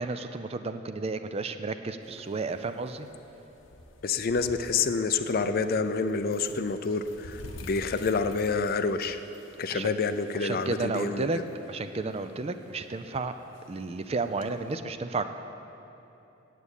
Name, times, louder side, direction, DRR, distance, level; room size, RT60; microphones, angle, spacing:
voice 1, 0.0-3.1 9.7-9.9 10.4-11.4 11.7-13.3 13.7-15.3, right 3 dB, 30° right, 9 dB, 0.4 m, -32 dB
sound 1, 2.0-14.7, left 2 dB, 80° left, 1.0 m, -50 dB
voice 2, 4.0-9.2 9.6-11.4, left 4 dB, 50° left, 10 dB, 0.5 m, -28 dB
9.1 x 8.4 x 8.1 m, 3.0 s
head